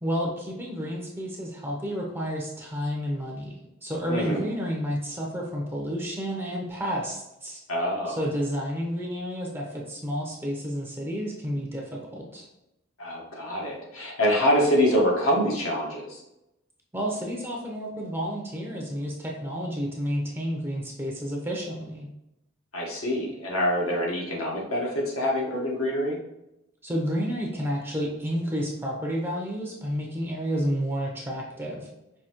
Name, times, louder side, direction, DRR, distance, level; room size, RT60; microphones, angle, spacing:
voice 1, 0.0-3.5 3.8-7.6 8.1-12.5 16.9-22.1 26.8-31.9, equal, 10° right, -2 dB, 0.6 m, -30 dB
voice 2, 4.1-4.4 7.7-8.2 13.0-16.2 22.7-26.2, equal, 85° left, -2 dB, 1.3 m, -25 dB
5.5 x 2.8 x 2.9 m, 0.88 s
head